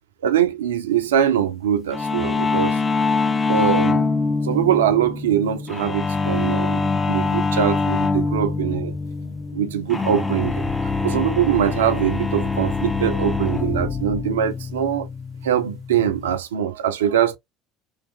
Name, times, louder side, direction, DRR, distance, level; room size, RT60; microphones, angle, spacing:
voice 1, 0.2-2.8 3.5-4.1 4.4-8.9 9.5-10.7 11.0-15.1 15.4-17.4, right 9 dB, 70° right, 0.3 m, -22 dB
sound 1, 1.9-16.4, left 4 dB, 15° left, 0.4 m, -24 dB
sound 2, 5.1-14.2, left 6 dB, 80° left, 0.8 m, -38 dB
2.5 x 2.3 x 2.3 m
figure-of-eight pair, 65°, 0 cm